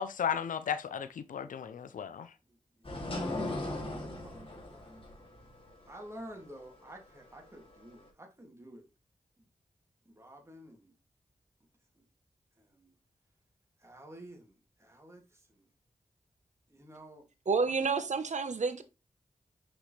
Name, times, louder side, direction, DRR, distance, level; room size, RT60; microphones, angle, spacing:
voice 1, 0.0-2.3, left 8 dB, 85° left, 0.5 m, -35 dB
sound 1, 2.8-8.1, left 1 dB, 45° left, 2.7 m, -39 dB
voice 2, 3.8-5.0 5.9-8.8 10.1-10.9 12.0-12.1 12.6-12.9 13.8-15.7 16.7-17.2 17.6-17.7, right 1 dB, 20° right, 2.4 m, -51 dB
voice 3, 17.5-18.8, right 4 dB, 65° right, 1.1 m, -29 dB
5.9 x 5.7 x 3.3 m
cardioid pair, 55°, 13 cm